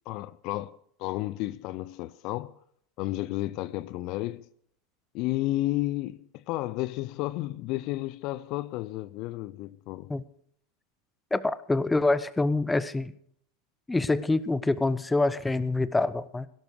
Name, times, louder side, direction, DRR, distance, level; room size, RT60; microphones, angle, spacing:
voice 1, 0.1-2.5 3.0-4.5 5.1-10.1, left 17 dB, 50° left, 0.5 m, -32 dB
voice 2, 11.3-13.1 13.9-16.5, left 2 dB, 10° left, 0.8 m, -26 dB
17.5 x 12.0 x 4.9 m
figure-of-eight pair, 85°, 0 cm